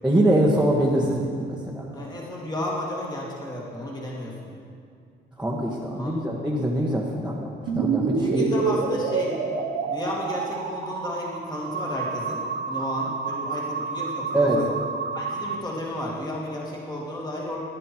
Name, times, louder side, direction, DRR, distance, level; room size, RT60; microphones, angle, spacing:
voice 1, 0.0-1.8 5.4-7.5 7.7-8.5 14.3-14.7, right 1 dB, 5° right, -5 dB, 1.5 m, -23 dB
voice 2, 1.9-4.5 5.9-6.3 8.2-9.4 9.9-14.7 15.1-17.6, left 1 dB, 20° left, -4 dB, 2.4 m, -33 dB
sound 1, 7.7-15.6, right 5 dB, 85° right, 1.3 m, -28 dB
15.0 x 10.5 x 4.6 m, 2.3 s
cardioid pair, 90°, 20 cm